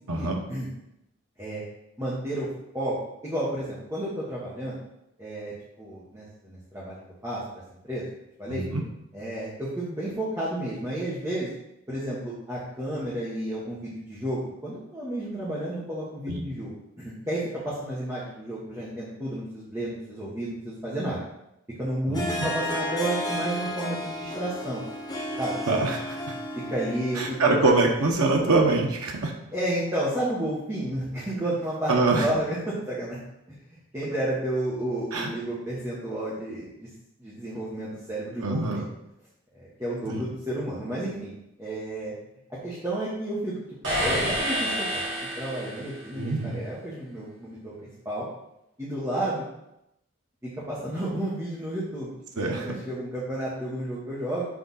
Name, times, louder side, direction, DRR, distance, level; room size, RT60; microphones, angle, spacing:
voice 1, 0.1-0.7 1.4-1.6 2.0-2.5 2.7-3.0 3.2-4.8 5.2-7.4 7.8-8.0 8.4-8.6 9.1-11.5 11.9-16.7 17.0-21.2 21.8-24.8 25.4-25.5 26.7-27.4 29.5-33.2 33.7-36.7 37.2-38.8 39.5-41.3 41.6-42.1 42.5-43.5 44.0-45.0 45.4-47.7 48.0-48.3 48.8-49.4 50.7-54.5, right 1 dB, 15° right, -9 dB, 1.4 m, -31 dB
voice 2, 8.5-8.8 16.3-16.4 22.1-22.5 25.7-26.2 27.1-29.3 31.9-32.3 35.1-35.3 38.4-38.9 40.1-40.2 46.2-46.6 52.4-52.7, right 3 dB, 85° right, 0 dB, 0.9 m, -24 dB
Harp, 22.1-27.6, left 1 dB, 20° left, 0.8 m, -33 dB
sound 1, 43.8-46.1, equal, 55° right, 2.4 m, -28 dB
6.2 x 3.6 x 5.5 m, 0.84 s
head